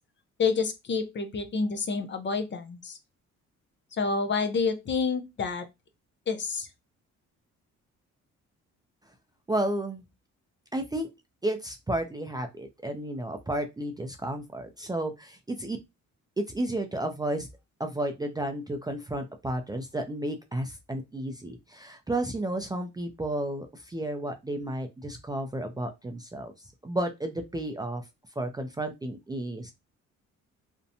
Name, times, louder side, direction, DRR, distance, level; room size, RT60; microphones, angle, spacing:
voice 1, 0.4-3.0 3.9-5.6 6.3-6.7, left 4 dB, 40° left, 0.5 m, -28 dB
voice 2, 9.5-10.0 10.7-11.1 11.4-15.8 16.5-17.5 17.8-26.5 26.8-28.0 28.4-29.7, right 1 dB, 15° right, 0.4 m, -32 dB
2.6 x 2.1 x 2.6 m
cardioid pair, 90°, 30 cm